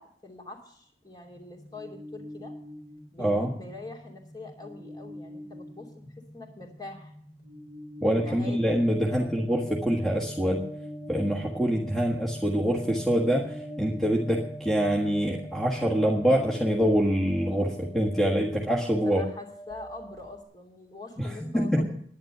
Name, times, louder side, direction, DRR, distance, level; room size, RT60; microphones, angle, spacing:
voice 1, 0.0-2.6 3.1-7.1 8.0-9.4 18.5-18.6 19.0-22.0, left 2 dB, 20° left, 1 dB, 2.8 m, -44 dB
sound 1, 1.2-20.4, equal, 70° left, 4.6 m, -43 dB
voice 2, 3.2-3.5 8.0-10.6 11.1-19.2 21.2-21.9, equal, 5° left, -3 dB, 1.6 m, -25 dB
11.0 x 10.5 x 6.7 m, 0.66 s
head